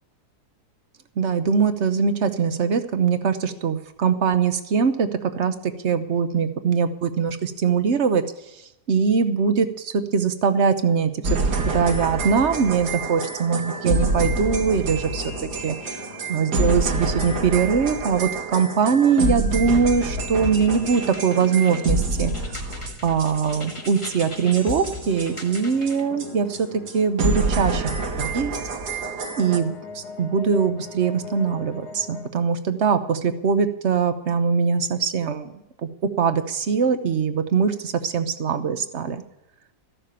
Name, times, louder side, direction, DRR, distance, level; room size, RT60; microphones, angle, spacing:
voice 1, 1.2-5.1 5.4-8.2 8.9-11.4 11.7-15.2 15.6-16.0 16.3-26.7 26.9-27.9 28.2-28.5 29.4-35.5 36.2-39.2, right 6 dB, 50° right, 10 dB, 1.0 m, -22 dB
sound 1, 11.2-25.9 26.2-26.3 26.5-26.6 26.9-27.0 27.2-29.6, right 2 dB, 85° right, 1.9 m, -27 dB
sound 2, 13.2-19.3 20.1-22.7 23.4-27.2 28.5-32.3, left 5 dB, 90° left, 2.0 m, -42 dB
sound 3, 20.4-26.1, left 4 dB, 20° left, 1.1 m, -38 dB
14.0 x 6.7 x 8.8 m, 0.89 s
omnidirectional pair, 1.7 m